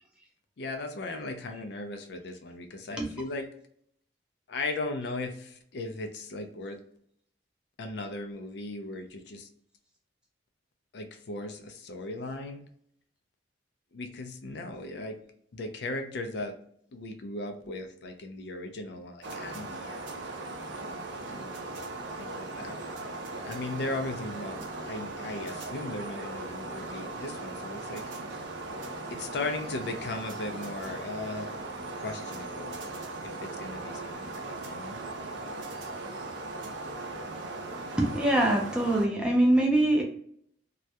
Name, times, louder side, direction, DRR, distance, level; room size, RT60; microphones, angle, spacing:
voice 1, 0.6-3.4 4.5-6.8 7.8-9.5 10.9-12.6 13.9-15.2 15.5-16.6 16.9-20.0 20.9-21.0 21.3-21.6 22.2-23.0 23.4-28.0 29.1-31.5 32.0-32.8 33.2-35.0, left 2 dB, 65° left, 6 dB, 0.4 m, -37 dB
sound 1, 19.2-39.1, right 2 dB, 85° right, 0.5 m, -38 dB
voice 2, 38.0-40.0, right 1 dB, 5° right, 0 dB, 0.4 m, -23 dB
2.3 x 2.1 x 2.7 m, 0.65 s
head